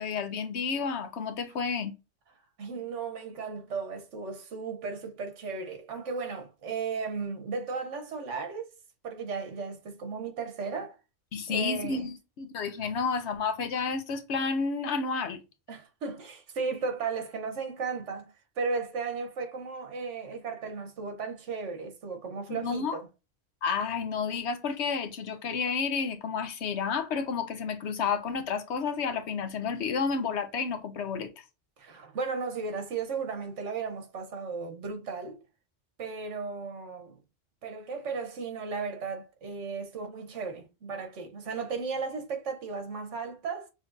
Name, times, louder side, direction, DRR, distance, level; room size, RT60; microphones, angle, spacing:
voice 1, 0.0-1.9 11.3-15.4 22.5-23.0 23.6-31.3, left 5 dB, 65° left, 1.0 m, -31 dB
voice 2, 2.6-8.7 9.0-11.0 11.5-12.1 15.7-23.1 31.8-35.4 36.0-37.2 37.6-43.7, right 5 dB, 75° right, 1.3 m, -35 dB
6.5 x 3.1 x 2.6 m
omnidirectional pair, 1.3 m